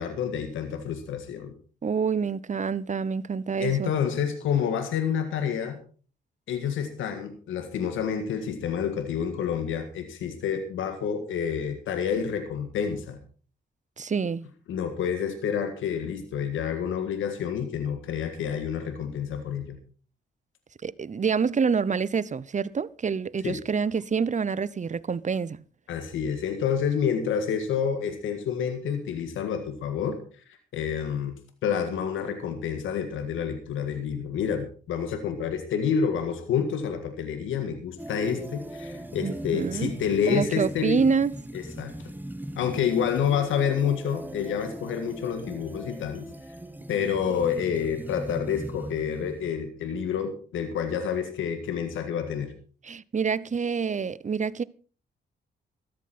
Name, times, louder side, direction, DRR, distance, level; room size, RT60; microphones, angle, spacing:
voice 1, 0.0-1.5 3.6-5.8 6.5-13.2 14.7-19.8 23.4-23.6 25.9-30.2 30.5-31.4 31.6-41.0 41.5-41.9 42.6-46.3 46.9-52.5, left 7 dB, 85° left, 1.8 m, -28 dB
voice 2, 1.8-3.9 14.0-14.5 20.8-25.6 39.2-39.9 40.3-41.3 52.8-54.6, right 5 dB, 40° right, 0.8 m, -27 dB
sound 1, 38.0-49.5, right 1 dB, 10° right, 1.5 m, -39 dB
13.5 x 13.0 x 4.3 m
supercardioid pair, 50°, 20 cm